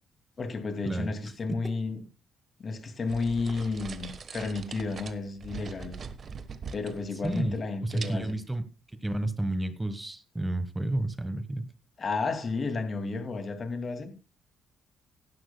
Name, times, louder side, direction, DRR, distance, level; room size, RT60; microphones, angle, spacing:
voice 1, 0.4-2.0 2.6-5.9 6.7-8.4 12.0-14.1, left 4 dB, 40° left, 2.5 m, -32 dB
sound 1, 3.1-7.7 7.9-8.5, right 5 dB, 50° right, 1.2 m, -42 dB
voice 2, 7.2-7.6 7.8-8.6 9.0-11.7, right 1 dB, 15° right, 1.3 m, -31 dB
17.5 x 11.5 x 2.3 m
cardioid pair, 90°, 0 cm